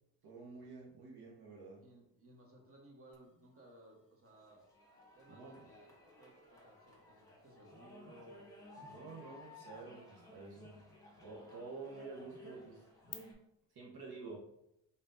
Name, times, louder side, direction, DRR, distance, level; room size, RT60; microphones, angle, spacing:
voice 1, 0.2-1.8 5.3-5.7 8.9-10.8 11.2-12.9 13.7-14.4, right 3 dB, 60° right, -2 dB, 1.0 m, -49 dB
voice 2, 1.8-4.7 5.1-5.9 6.2-8.5, right 1 dB, 30° right, 0 dB, 1.2 m, -60 dB
sound 1, 3.1-13.1, left 7 dB, 35° left, 0.7 m, -62 dB
sound 2, 4.3-13.3, left 1 dB, 10° left, 1.5 m, -57 dB
4.0 x 3.5 x 2.5 m, 0.79 s
supercardioid pair, 55°, 43 cm